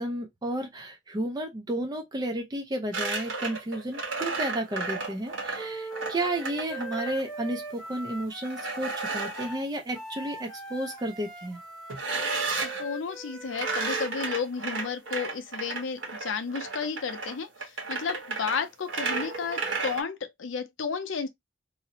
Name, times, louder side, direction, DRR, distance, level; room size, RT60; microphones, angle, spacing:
voice 1, 0.0-11.6, right 1 dB, 20° right, 0.4 m, -32 dB
sound 1, 2.9-7.2 8.4-9.5 11.9-12.8 13.5-20.0, right 3 dB, 75° right, 1.0 m, -33 dB
Wind instrument woodwind instrument, 5.6-14.1, right 2 dB, ahead, 0.8 m, -40 dB
voice 2, 12.6-21.3, left 5 dB, 75° left, 0.5 m, -33 dB
2.5 x 2.0 x 2.7 m
head